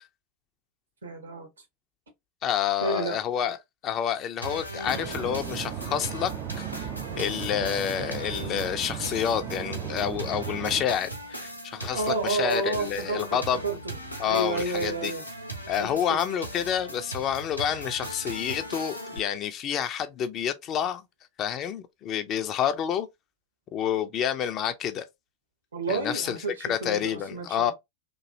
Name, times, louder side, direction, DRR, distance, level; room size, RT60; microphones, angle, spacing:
voice 1, 1.0-1.5 2.8-3.2 11.9-13.9 14.2-15.2 15.8-16.2 25.7-27.7, right 3 dB, 70° right, 1.1 m, -30 dB
voice 2, 2.4-3.6 3.8-6.9 7.2-13.6 14.2-15.1 15.7-21.0 21.4-23.1 23.7-25.0 25.9-26.4 26.7-27.7, left 9 dB, 35° left, 0.4 m, -28 dB
sound 1, 4.4-19.2, right 1 dB, 90° left, 0.7 m, -39 dB
sound 2, 4.9-10.9, right 10 dB, 35° right, 0.3 m, -36 dB
3.0 x 2.6 x 2.7 m
figure-of-eight pair, 90°, 0 cm